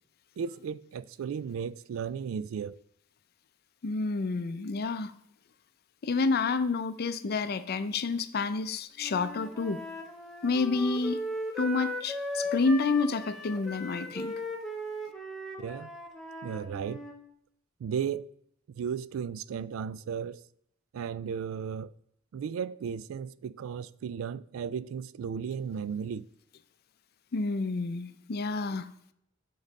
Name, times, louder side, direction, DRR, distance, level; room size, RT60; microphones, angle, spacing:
voice 1, 0.4-2.8 15.6-15.9 16.4-17.0 17.8-18.3 18.8-20.4 20.9-21.9 22.3-26.2, right 7 dB, 80° right, 0.3 m, -35 dB
voice 2, 3.8-5.1 6.0-9.8 10.4-11.2 11.6-14.3 27.3-28.9, left 4 dB, 50° left, 0.5 m, -29 dB
Wind instrument woodwind instrument, 9.0-17.1, left 1 dB, ahead, 0.9 m, -37 dB
7.2 x 3.9 x 5.2 m
head